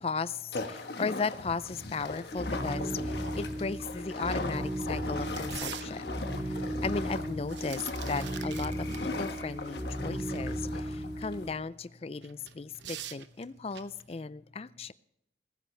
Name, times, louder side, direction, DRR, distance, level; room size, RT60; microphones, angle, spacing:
voice 1, 0.0-14.9, left 4 dB, 35° left, 0.4 m, -36 dB
sound 1, 0.5-11.5, left 3 dB, 65° left, 1.3 m, -39 dB
sound 2, 2.3-11.5, equal, 10° right, 2.8 m, -36 dB
sound 3, 3.2-3.3 3.7-3.8 4.2-6.4 7.2-9.1 9.4-9.5 12.2-14.1, right 10 dB, 75° right, 0.8 m, -45 dB
21.0 x 10.0 x 3.3 m
head